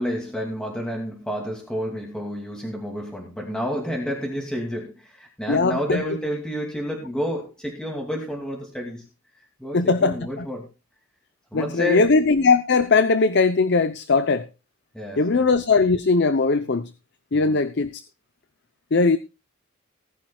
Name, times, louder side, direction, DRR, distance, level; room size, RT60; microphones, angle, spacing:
voice 1, 0.0-9.0 9.6-10.7 11.5-12.2 14.9-15.5 17.4-17.6, equal, 5° left, 2.5 m, -30 dB
voice 2, 5.5-6.0 9.7-10.5 11.5-14.5 15.2-16.9 17.3-18.0 18.9-19.2, left 4 dB, 55° left, 0.7 m, -20 dB
19.0 x 10.5 x 2.3 m
head